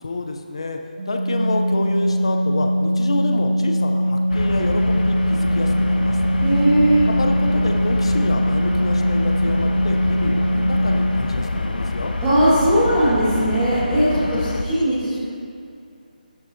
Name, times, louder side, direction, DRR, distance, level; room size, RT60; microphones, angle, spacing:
voice 1, 0.0-0.8 1.1-6.2 7.2-12.1, left 2 dB, 35° left, 4 dB, 0.7 m, -28 dB
Organ, 1.0-11.6, equal, 45° right, 1.4 m, -21 dB
sound 1, 4.3-14.6, left 2 dB, 80° left, 1.0 m, -26 dB
voice 2, 6.4-7.1 12.2-15.1, right 1 dB, 10° right, -11 dB, 1.2 m, -18 dB
13.0 x 12.5 x 2.7 m, 2.6 s
figure-of-eight pair, 180°, 5 cm